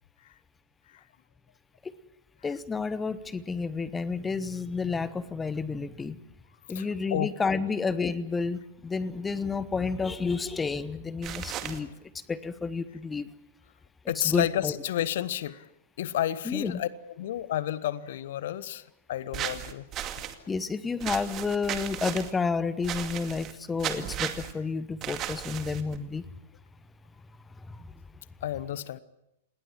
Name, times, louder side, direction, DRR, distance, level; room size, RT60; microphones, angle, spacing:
voice 1, 2.4-6.2 6.7-11.9 12.3-13.3 14.1-14.7 16.4-16.8 20.5-26.3 27.6-27.9, left 4 dB, 10° left, 16 dB, 1.1 m, -30 dB
voice 2, 6.7-7.3 14.1-15.6 16.0-16.9 17.2-19.9 28.4-29.0, left 12 dB, 55° left, 17 dB, 1.1 m, -31 dB
sound 1, 11.2-11.8 19.3-20.3 21.0-22.3 22.8-23.5 23.8-24.5 25.0-26.0, right 11 dB, 30° right, 2.3 m, -35 dB
28.0 x 20.5 x 7.4 m, 0.87 s
figure-of-eight pair, 105°, 0 cm